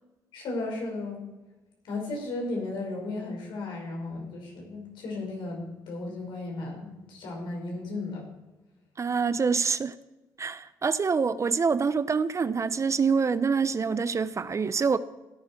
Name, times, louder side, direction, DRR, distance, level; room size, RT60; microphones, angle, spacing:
voice 1, 0.3-1.3 1.8-8.3, left 2 dB, 70° left, 5.3 m, -35 dB
voice 2, 9.0-9.9 10.4-15.0, right 5 dB, 35° right, 0.7 m, -26 dB
16.5 x 11.0 x 4.5 m
hypercardioid pair, 55°, 8 cm